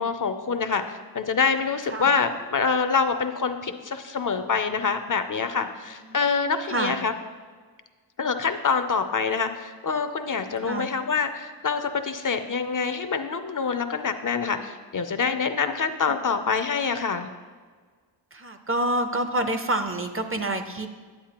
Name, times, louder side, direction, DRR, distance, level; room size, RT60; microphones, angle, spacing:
voice 1, 0.0-7.1 8.2-17.3, left 5 dB, 45° left, 9 dB, 0.5 m, -26 dB
voice 2, 5.9-6.2 6.7-7.0 10.6-10.9 16.1-16.2 18.3-20.9, right 1 dB, 30° right, 7 dB, 0.6 m, -28 dB
10.0 x 8.0 x 2.9 m, 1.5 s
wide cardioid pair, 80°, 44 cm